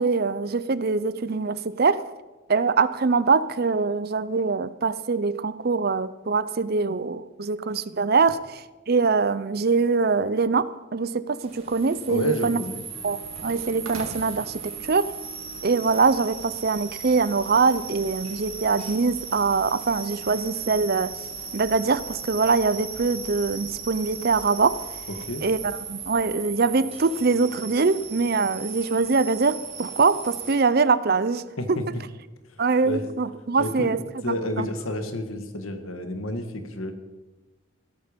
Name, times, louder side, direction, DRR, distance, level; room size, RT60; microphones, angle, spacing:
voice 1, 0.0-2.0 2.5-12.6 13.0-15.1 15.6-21.1 21.5-24.8 25.4-31.4 31.7-31.8 32.6-34.0 34.3-34.7, right 4 dB, 50° right, 0.6 m, -23 dB
sound 1, 11.4-30.6, right 5 dB, 30° right, 3.4 m, -37 dB
voice 2, 12.1-12.8 25.3-25.4 31.6-32.0 32.9-33.0 33.6-34.0 34.2-36.9, left 1 dB, 85° left, 1.8 m, -30 dB
sound 2, 12.9-26.3, right 2 dB, 90° right, 3.1 m, -47 dB
16.0 x 13.5 x 5.2 m
head